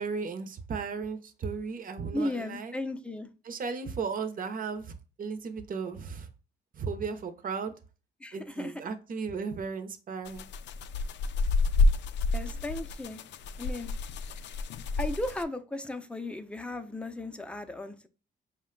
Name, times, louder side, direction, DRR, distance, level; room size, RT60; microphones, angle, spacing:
voice 1, 0.0-2.7 3.4-6.3 6.7-7.7 8.3-10.5, right 5 dB, 45° right, 8 dB, 0.7 m, -35 dB
voice 2, 2.1-3.3 8.2-8.7 12.3-13.2 13.6-13.9 15.0-18.1, left 2 dB, 5° left, 7 dB, 0.5 m, -35 dB
sound 1, 10.3-15.4, left 3 dB, 65° left, 0.4 m, -29 dB
5.0 x 2.2 x 3.7 m, 0.34 s
cardioid pair, 90°, 20 cm